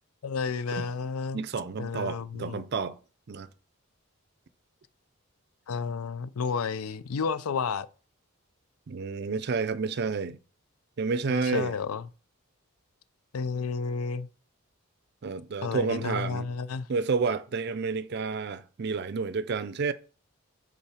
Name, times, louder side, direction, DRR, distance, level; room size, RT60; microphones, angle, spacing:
voice 1, 0.2-1.4 1.8-2.6 5.7-7.9 11.3-12.1 13.3-14.3 15.6-16.9, left 5 dB, 85° left, 0.4 m, -31 dB
voice 2, 1.3-3.0 3.3-3.5 8.9-10.4 11.0-11.8 15.2-16.5 16.9-19.9, right 4 dB, 50° right, 0.4 m, -30 dB
5.5 x 3.9 x 4.9 m
head